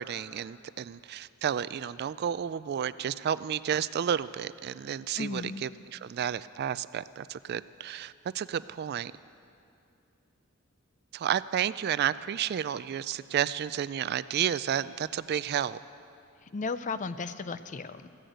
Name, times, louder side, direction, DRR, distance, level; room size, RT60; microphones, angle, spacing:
voice 1, 0.0-9.1 11.1-15.8, right 9 dB, 50° right, 16 dB, 0.3 m, -31 dB
voice 2, 5.2-5.7 16.4-18.1, left 4 dB, 35° left, 13 dB, 0.5 m, -35 dB
15.5 x 10.5 x 7.9 m, 2.6 s
head